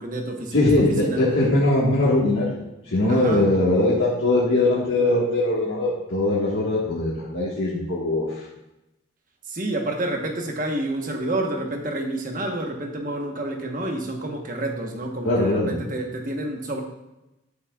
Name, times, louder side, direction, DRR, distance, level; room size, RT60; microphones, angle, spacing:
voice 1, 0.0-1.3 3.1-3.4 9.4-16.8, right 1 dB, 45° right, 2 dB, 1.1 m, -29 dB
voice 2, 0.5-8.4 15.2-15.7, left 2 dB, 85° left, -7 dB, 1.6 m, -21 dB
10.5 x 8.6 x 2.4 m, 0.94 s
head